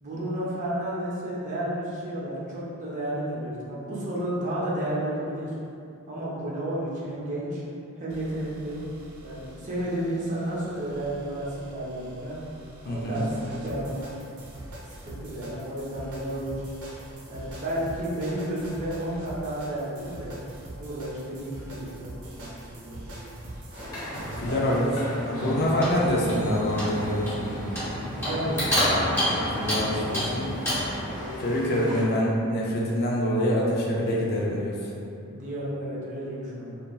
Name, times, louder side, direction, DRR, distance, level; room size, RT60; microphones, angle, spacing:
voice 1, 0.0-5.5 6.1-7.6 8.0-8.8 9.2-12.4 12.8-14.0 14.8-16.5 17.3-20.4 20.8-22.1 22.4-23.3 24.5-25.8 28.1-28.9 35.3-36.8, right 1 dB, 35° right, -7 dB, 0.5 m, -32 dB
sound 1, 8.1-24.9, right 1 dB, 90° right, 0.6 m, -44 dB
voice 2, 12.8-13.2 24.1-24.9 25.2-27.6 29.3-30.5 31.4-34.9, equal, 45° left, -4 dB, 0.4 m, -26 dB
sound 2, 23.7-32.0, equal, 75° left, 1.1 m, -37 dB
Clock, 25.5-31.0, equal, 10° left, 0.8 m, -29 dB
2.8 x 2.3 x 2.3 m, 2.6 s
head